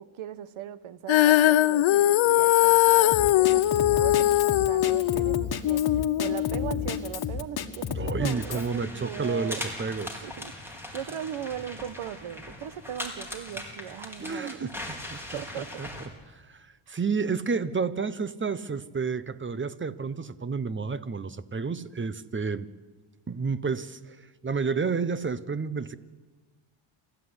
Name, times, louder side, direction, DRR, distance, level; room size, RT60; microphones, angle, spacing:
voice 1, 0.0-9.6 10.2-14.8 15.3-15.8 16.9-17.0, right 10 dB, 70° right, 1.3 m, -39 dB
Female singing, 1.1-7.3, left 14 dB, 65° left, 0.9 m, -21 dB
Drum kit, 3.1-8.7, left 7 dB, 45° left, 1.9 m, -32 dB
voice 2, 7.9-10.2 14.2-14.7 15.1-15.9 16.3-22.7 23.3-26.0, right 5 dB, 25° right, 1.0 m, -31 dB
sound 1, 8.2-16.1, left 1 dB, 5° right, 4.9 m, -40 dB
28.5 x 14.0 x 9.8 m
cardioid pair, 105°, 50 cm